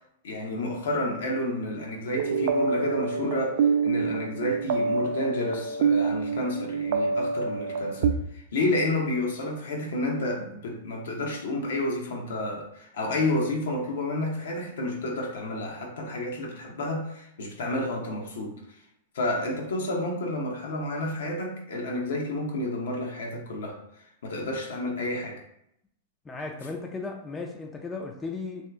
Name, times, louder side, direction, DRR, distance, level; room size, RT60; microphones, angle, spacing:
voice 1, 0.2-18.6 19.1-23.8 24.2-25.4, left 1 dB, 80° left, 0 dB, 0.8 m, -30 dB
sound 1, 2.2-8.1, right 5 dB, 65° right, 0.3 m, -26 dB
voice 2, 26.2-28.7, left 3 dB, 15° left, 1 dB, 0.4 m, -36 dB
2.8 x 2.2 x 3.3 m, 0.75 s
hypercardioid pair, 120°, 0 cm